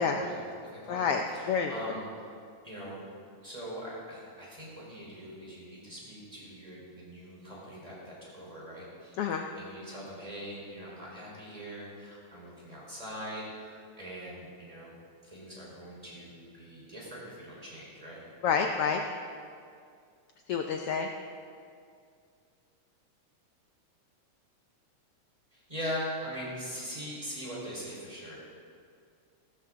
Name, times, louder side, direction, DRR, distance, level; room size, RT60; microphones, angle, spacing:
voice 1, 0.0-2.3 2.6-3.0 3.4-9.2 9.5-14.9 15.2-18.2 25.5-28.5, equal, 10° right, -5 dB, 4.3 m, -42 dB
voice 2, 0.9-1.7 9.2-9.4 18.4-19.0 20.5-21.1, left 6 dB, 80° left, 4 dB, 1.3 m, -28 dB
17.5 x 13.5 x 3.8 m, 2.3 s
omnidirectional pair, 3.4 m